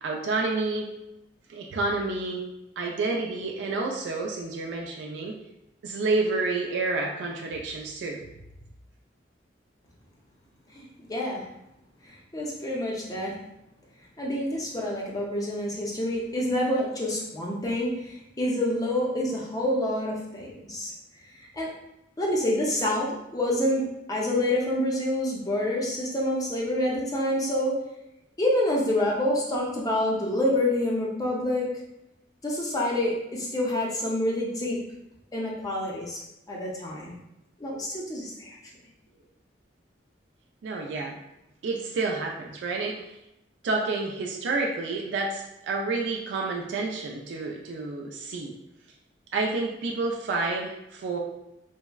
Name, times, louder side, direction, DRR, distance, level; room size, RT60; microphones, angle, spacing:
voice 1, 0.0-0.9 1.5-2.5 2.8-5.4 5.8-8.2 40.6-41.2 41.6-43.0 43.6-48.5 49.3-51.2, right 3 dB, 70° right, 0 dB, 0.3 m, -29 dB
voice 2, 10.7-11.4 12.0-13.3 14.2-20.9 21.4-21.7 22.2-27.8 28.4-31.7 32.4-34.8 35.3-36.2 36.5-37.1 37.6-38.6, left 1 dB, 20° left, -3 dB, 0.5 m, -27 dB
3.4 x 2.0 x 2.2 m, 0.88 s
head